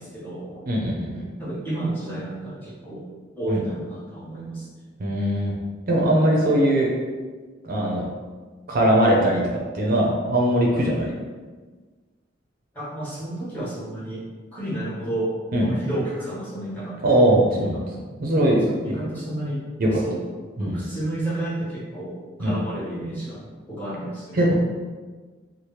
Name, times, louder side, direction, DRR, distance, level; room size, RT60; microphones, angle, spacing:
voice 1, 0.0-0.6 1.4-3.0 3.3-4.6 12.7-17.0 17.5-17.8 18.7-19.6 20.0-20.2 20.6-24.5, right 1 dB, 10° left, -9 dB, 1.3 m, -31 dB
voice 2, 0.7-1.3 3.5-3.6 5.0-5.5 5.9-6.9 7.6-8.1 8.7-9.4 9.7-11.1 15.5-15.7 17.0-17.8 18.2-18.9 19.8-20.0 20.6-20.8 22.4-22.6 24.3-24.5, right 1 dB, 50° right, -2 dB, 0.5 m, -20 dB
3.2 x 2.1 x 4.2 m, 1.4 s
head